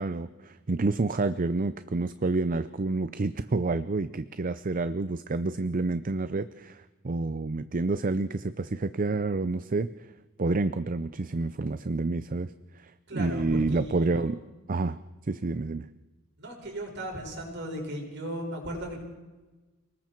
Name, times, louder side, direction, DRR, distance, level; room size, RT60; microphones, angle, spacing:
voice 1, 0.0-9.9 10.4-12.5 12.8-14.4 14.7-15.0 15.3-15.9, right 3 dB, 40° right, 13 dB, 0.6 m, -29 dB
voice 2, 13.1-14.2 16.4-19.0, right 1 dB, 55° right, 0 dB, 6.0 m, -36 dB
29.5 x 20.0 x 4.6 m, 1.2 s
head